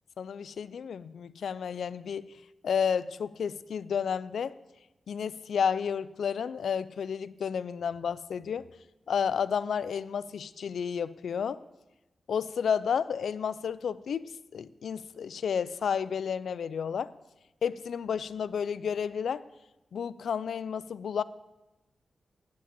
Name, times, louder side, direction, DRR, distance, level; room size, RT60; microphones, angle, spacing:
voice 1, 0.2-2.3 2.6-4.6 5.1-8.7 9.1-11.6 12.3-17.1 17.6-19.4 19.9-21.2, left 7 dB, 85° left, 16 dB, 0.4 m, -31 dB
8.6 x 8.5 x 8.3 m, 1.0 s
cardioid pair, 80°, 0 cm